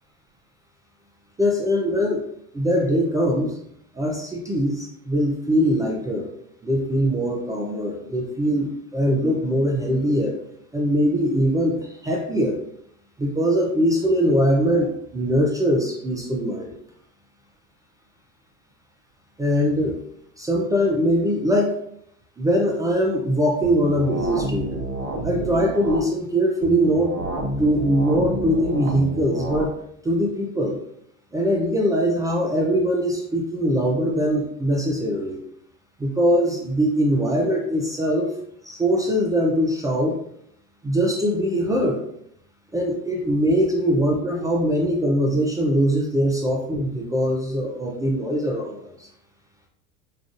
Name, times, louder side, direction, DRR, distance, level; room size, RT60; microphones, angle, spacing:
voice 1, 1.4-2.2 2.5-3.5 4.0-6.3 6.6-10.4 10.7-12.6 13.2-16.7 19.4-19.9 20.4-21.8 22.4-24.7 25.2-27.2 27.6-29.7 30.0-30.8 31.3-35.4 36.0-38.3 38.6-40.2 40.8-42.0 42.7-49.1, equal, 10° right, -2 dB, 0.4 m, -22 dB
sound 1, 23.6-26.0 26.6-29.6, right 1 dB, 30° right, 0.8 m, -29 dB
5.0 x 2.4 x 2.4 m, 0.69 s
hypercardioid pair, 90°, 44 cm